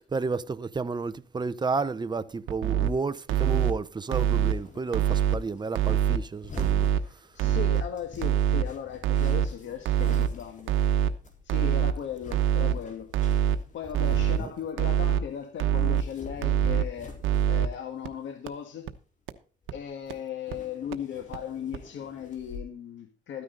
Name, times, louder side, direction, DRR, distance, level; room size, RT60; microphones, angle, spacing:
voice 1, 0.0-7.2 14.4-14.5, right 4 dB, 20° right, 0.8 m, -31 dB
sound 1, 2.5-2.9 3.3-3.7 4.1-4.5 4.9-5.4 5.7-6.2 6.6-7.0 7.4-7.8 8.2-8.6 9.0-9.5 9.9-10.3 10.7-11.1 11.5-11.9 12.3-12.7 13.1-13.6 13.9-14.4 14.8-15.2 15.6-16.0 16.4-16.8 17.2-17.7 18.0-18.1 18.5-18.6 18.9-19.0 19.3-19.4 19.7-19.8 20.1-20.2 20.5-20.6 20.9-21.0 21.3-21.4 21.7-21.8, right 10 dB, 85° right, 1.1 m, -24 dB
sound 2, 2.8-3.0 4.1-14.9 15.2-17.8 18.1-18.5 19.3-19.4 19.6-20.0 20.3-22.6, left 4 dB, 40° left, 4.1 m, -46 dB
voice 2, 6.9-10.7 11.4-13.1 13.7-17.1 17.5-18.9 19.7-23.4, left 8 dB, 70° left, 1.7 m, -37 dB
13.5 x 9.7 x 3.9 m
cardioid pair, 90°, 20 cm